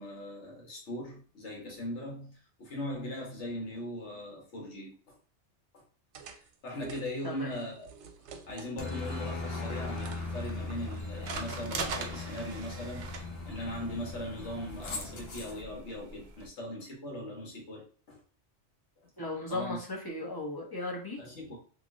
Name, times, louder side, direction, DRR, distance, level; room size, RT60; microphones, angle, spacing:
voice 1, 0.0-5.1 5.7-5.8 6.2-7.9 8.5-18.2 19.5-19.8 21.2-21.6, left 1 dB, 80° left, -2 dB, 1.4 m, -40 dB
sound 1, 6.1-9.1 9.5-12.7, right 5 dB, 85° right, 0.9 m, -50 dB
Aircraft, 8.8-15.6, left 3 dB, 65° left, 0.9 m, -39 dB
sound 2, 9.7-16.5, right 3 dB, 55° right, 0.6 m, -43 dB
voice 2, 19.2-21.2, left 2 dB, 20° left, -3 dB, 0.8 m, -36 dB
3.1 x 2.8 x 2.5 m, 0.40 s
omnidirectional pair, 1.2 m